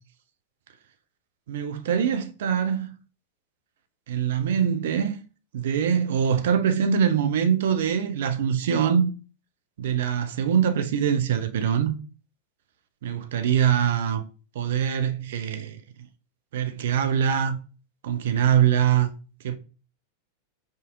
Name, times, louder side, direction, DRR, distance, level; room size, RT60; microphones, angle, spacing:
voice 1, 1.5-3.0 4.1-5.2 5.5-9.1 9.8-12.0 13.0-14.2 14.5-15.8 16.5-17.6 18.0-19.1 19.4-19.6, right 8 dB, 55° right, 0.5 m, -23 dB
5.0 x 2.7 x 3.6 m
figure-of-eight pair, 90°, 0 cm